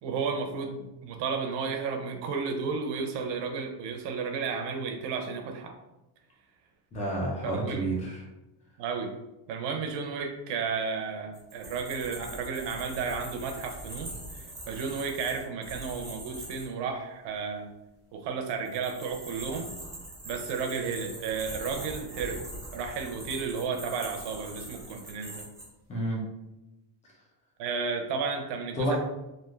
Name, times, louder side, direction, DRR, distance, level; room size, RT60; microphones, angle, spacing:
voice 1, 0.0-5.8 7.4-7.9 8.8-9.1 9.5-17.7 18.1-19.7 20.2-22.4 22.7-25.5 27.6-29.0, right 5 dB, 60° right, 4 dB, 0.6 m, -33 dB
voice 2, 6.9-8.2 25.9-26.2 28.8-29.0, right 1 dB, 15° left, -2 dB, 0.4 m, -29 dB
sound 1, 11.3-16.7 18.5-25.7, right 1 dB, 5° right, 0.8 m, -42 dB
3.2 x 2.5 x 2.4 m, 0.97 s
cardioid pair, 165°, 49 cm